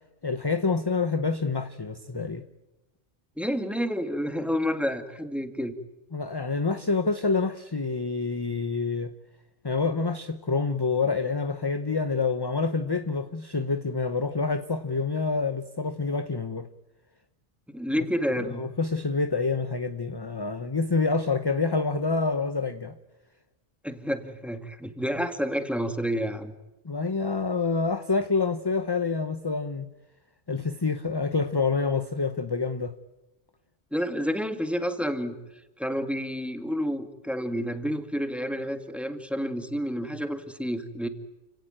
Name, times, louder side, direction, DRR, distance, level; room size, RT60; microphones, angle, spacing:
voice 1, 0.2-2.5 6.1-9.1 9.6-16.7 18.4-23.0 26.8-29.9 30.5-32.9, left 4 dB, 25° left, 0.8 m, -27 dB
voice 2, 3.4-5.7 17.7-18.6 23.8-26.5 33.9-35.4 35.8-41.1, equal, ahead, 2.0 m, -29 dB
29.5 x 17.5 x 8.9 m
omnidirectional pair, 1.2 m